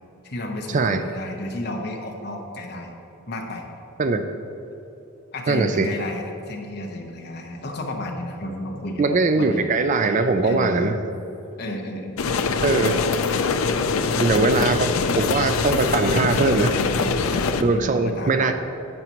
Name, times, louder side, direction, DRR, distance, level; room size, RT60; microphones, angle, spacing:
voice 1, 0.2-3.0 3.3-3.7 5.3-9.6 10.4-10.8 11.6-12.2 14.1-14.7 16.9-18.5, left 1 dB, 50° left, 2 dB, 1.0 m, -32 dB
voice 2, 5.5-5.9 9.0-11.0 12.6-13.0 14.2-14.8 15.2-16.8 17.6-18.5, right 3 dB, 35° right, 8 dB, 0.4 m, -21 dB
sound 1, 12.2-17.6, left 4 dB, 75° left, 0.5 m, -23 dB
10.5 x 8.2 x 3.0 m, 2.9 s
head